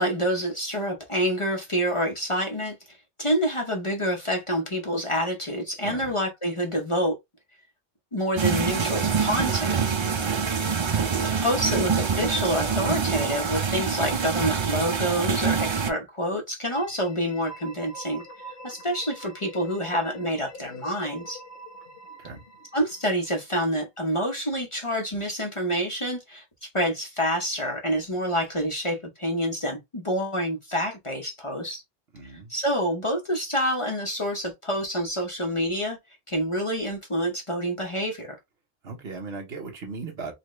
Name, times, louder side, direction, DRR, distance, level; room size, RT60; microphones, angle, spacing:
voice 1, 0.0-7.1 8.1-9.8 11.0-11.1 11.4-21.4 22.7-31.8 32.2-36.0 36.3-38.4, equal, 30° left, 0.8 m, -27 dB
voice 2, 5.8-6.1 22.2-22.4 32.1-32.5 38.8-40.3, right 4 dB, 65° right, 1.3 m, -37 dB
sound 1, 8.4-15.9, right 6 dB, 45° right, 0.3 m, -25 dB
sound 2, 16.7-23.4, equal, 55° left, 1.3 m, -44 dB
4.1 x 2.3 x 3.1 m
omnidirectional pair, 1.2 m